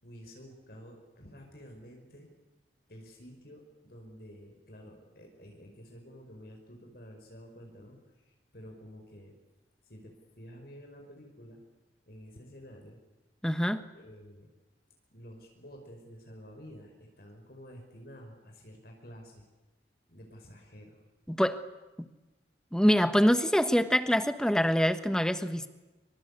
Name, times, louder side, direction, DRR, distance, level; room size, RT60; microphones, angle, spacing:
voice 1, 0.0-2.3 2.9-8.0 8.2-9.3 9.8-11.6 12.1-13.0 13.9-14.5 15.1-19.4 20.1-21.0, equal, 55° left, 2 dB, 5.1 m, -50 dB
voice 2, 13.4-13.8 21.3-21.6 22.7-25.7, equal, 5° left, 10 dB, 1.2 m, -25 dB
26.5 x 24.5 x 8.4 m, 1.1 s
head